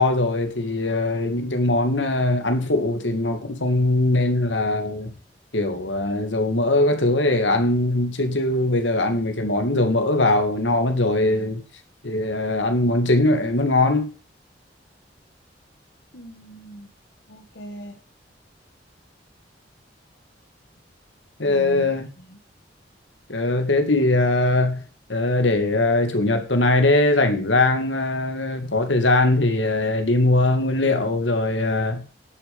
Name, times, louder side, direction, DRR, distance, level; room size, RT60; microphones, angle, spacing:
voice 1, 0.0-5.1 5.5-11.6 12.0-14.1 21.4-22.1 23.3-24.8 25.1-32.0, left 2 dB, 85° left, 2.2 m, -21 dB
voice 2, 16.1-16.9 17.3-18.0 21.4-21.9 22.3-22.4, equal, 65° left, 1.9 m, -40 dB
11.0 x 8.7 x 5.4 m
head